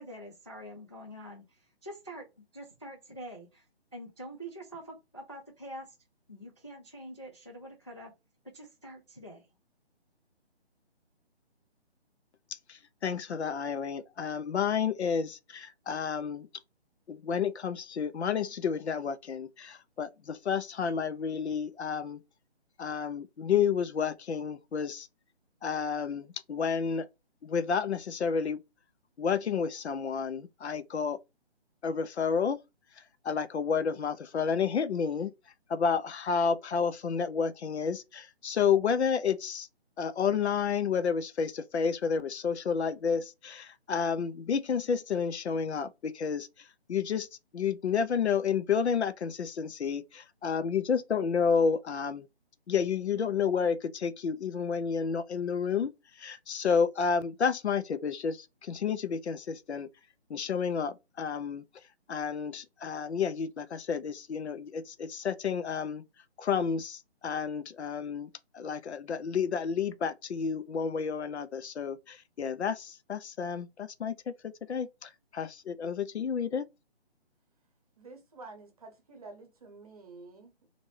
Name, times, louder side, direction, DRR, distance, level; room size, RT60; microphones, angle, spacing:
voice 1, 0.0-3.7 3.9-6.0 6.3-8.1 8.4-9.5, right 1 dB, 30° left, 0.3 m, -45 dB
voice 2, 12.7-16.5 17.1-22.2 22.8-25.1 25.6-27.1 27.4-28.6 29.2-31.2 31.8-32.6 33.2-35.3 35.7-39.7 40.0-47.3 47.5-52.3 52.7-55.9 56.2-59.9 60.3-61.6 62.1-66.0 66.4-68.3 68.5-74.3 74.7-76.6, left 6 dB, 80° left, 0.6 m, -30 dB
voice 3, 78.0-80.7, right 3 dB, 35° right, 0.8 m, -49 dB
2.7 x 2.5 x 3.1 m
figure-of-eight pair, 155°, 33 cm